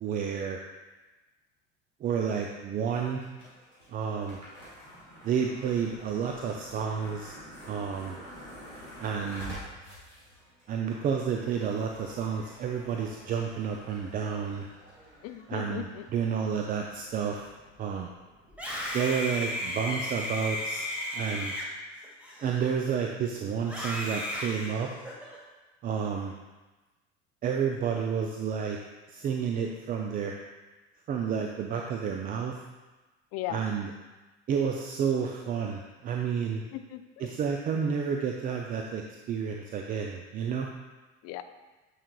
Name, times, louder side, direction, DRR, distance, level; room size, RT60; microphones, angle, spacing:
voice 1, 0.0-0.6 2.0-3.2 3.9-4.4 5.2-7.3 7.7-8.2 9.0-9.6 10.7-14.7 15.5-17.5 17.8-18.1 18.9-20.8 21.1-21.5 22.4-24.9 25.8-26.3 27.4-28.8 29.1-30.4 31.1-32.6 33.5-33.9 34.5-36.6 37.2-39.0 39.3-40.7, right 7 dB, 25° right, 2 dB, 0.4 m, -30 dB
sound 1, 2.9-20.0, equal, 90° right, 1.8 m, -49 dB
voice 2, 15.2-16.1 33.3-33.6 36.4-37.3 41.2-41.4, left 13 dB, 45° left, 10 dB, 0.5 m, -38 dB
Screaming, 18.5-23.0 23.6-25.4, left 1 dB, 5° right, 1.4 m, -35 dB
8.7 x 4.8 x 2.3 m, 1.2 s
figure-of-eight pair, 70°, 36 cm